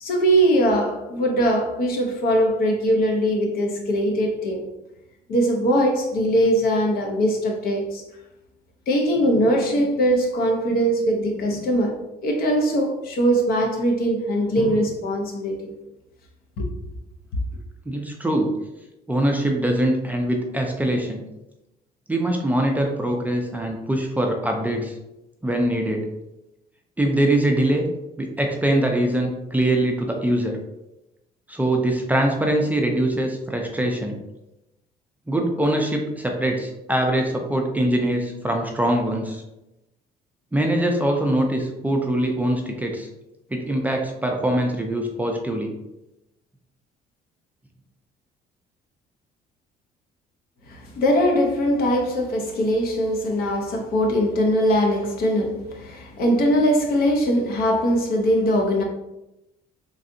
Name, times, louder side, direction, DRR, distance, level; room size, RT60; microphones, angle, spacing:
voice 1, 0.0-4.6 5.3-8.0 8.9-12.0 12.2-15.7 16.6-16.7 50.7-58.8, equal, 65° left, 0.7 m, -21 dB
voice 2, 17.9-18.5 19.1-21.2 22.1-25.0 25.4-26.1 27.0-27.9 28.2-30.6 31.5-34.2 35.3-39.4 40.5-43.1 43.5-45.7, right 1 dB, 10° right, 0.4 m, -23 dB
3.2 x 2.6 x 2.6 m
cardioid pair, 110°, 17 cm